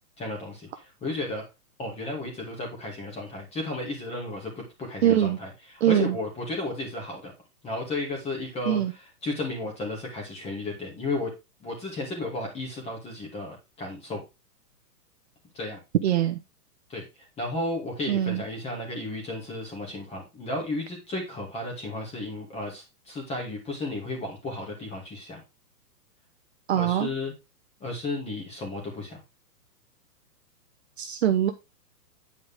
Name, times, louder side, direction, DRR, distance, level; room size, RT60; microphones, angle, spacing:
voice 1, 0.2-1.4 1.8-7.3 7.6-8.8 9.2-11.3 11.6-14.2 15.5-15.8 16.9-17.0 17.4-25.4 26.7-27.3 27.8-29.2, left 2 dB, 10° left, 0 dB, 2.6 m, -33 dB
voice 2, 5.0-5.4 5.8-6.1 8.7-8.9 16.0-16.4 18.1-18.4 26.7-27.1 31.0-31.5, right 11 dB, 40° right, 7 dB, 0.8 m, -23 dB
9.6 x 5.1 x 3.7 m, 0.25 s
hypercardioid pair, 160°, 49 cm